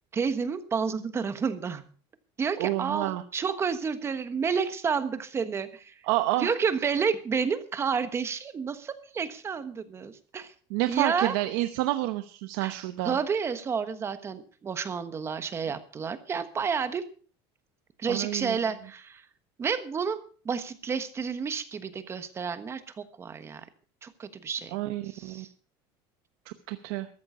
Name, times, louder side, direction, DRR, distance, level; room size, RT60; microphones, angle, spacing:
voice 1, 0.1-1.9 2.4-5.9 6.4-10.5 10.9-11.3 12.6-12.7 13.0-17.1 18.0-19.2 19.6-23.7 24.0-24.8 25.0-25.5, right 6 dB, 25° right, 11 dB, 1.2 m, -30 dB
voice 2, 2.6-3.2 6.0-6.5 10.7-13.2 18.1-18.6 24.7-25.4 26.5-27.1, right 16 dB, 85° right, 10 dB, 0.9 m, -29 dB
14.0 x 12.5 x 5.0 m, 0.42 s
cardioid pair, 160°, 11 cm